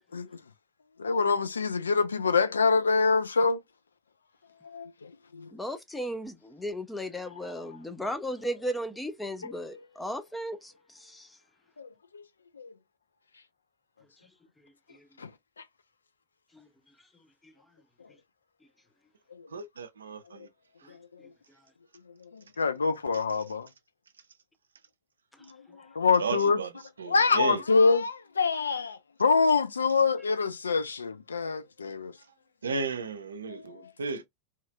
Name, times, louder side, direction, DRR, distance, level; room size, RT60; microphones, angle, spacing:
voice 1, 1.0-3.6 4.6-5.5 9.4-9.5 11.8-12.2 12.6-12.7 15.2-15.3 19.3-19.5 20.9-21.3 22.2-23.7 25.4-26.6 27.1-32.1 33.5-33.6, left 4 dB, 75° left, 0.4 m, -26 dB
voice 2, 5.5-11.4 14.6-15.1 16.5-16.7 17.4-17.5 20.8-21.0 25.3-25.8, equal, 5° left, 0.5 m, -36 dB
voice 3, 19.5-20.5 20.8-20.9 26.2-26.7 27.0-27.6 32.6-34.2, right 5 dB, 70° right, 0.4 m, -34 dB
2.8 x 2.4 x 2.2 m
figure-of-eight pair, 90°, 0 cm